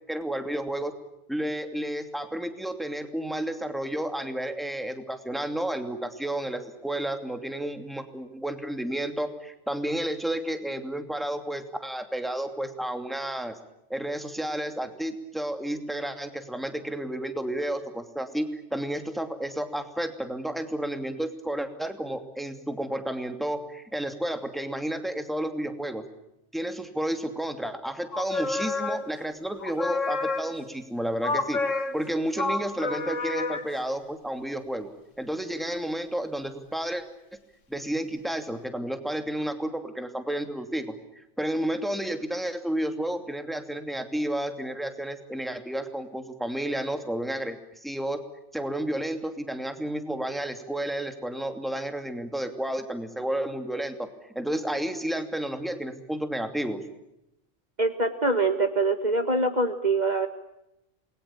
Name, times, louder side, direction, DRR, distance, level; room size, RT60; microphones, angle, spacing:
voice 1, 0.1-0.9 1.3-13.6 13.9-26.0 26.5-31.6 31.9-34.9 35.2-37.0 37.7-48.2 48.5-54.1 54.3-56.8, right 1 dB, ahead, 7 dB, 2.7 m, -31 dB
sound 1, 28.1-29.3 29.6-30.8 31.2-33.8, left 3 dB, 75° left, 2.1 m, -30 dB
voice 2, 57.8-60.3, right 3 dB, 35° right, 6 dB, 1.9 m, -24 dB
28.0 x 22.0 x 8.7 m, 0.86 s
omnidirectional pair, 1.3 m